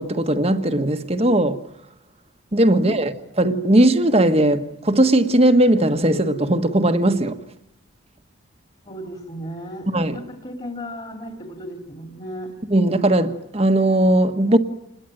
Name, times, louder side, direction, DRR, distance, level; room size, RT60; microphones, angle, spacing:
voice 1, 0.0-1.6 2.5-7.4 9.9-10.2 12.7-14.6, right 1 dB, 30° right, 1.4 m, -18 dB
voice 2, 2.7-3.0 8.8-12.5, equal, 30° left, 2.8 m, -35 dB
28.0 x 21.0 x 9.1 m
head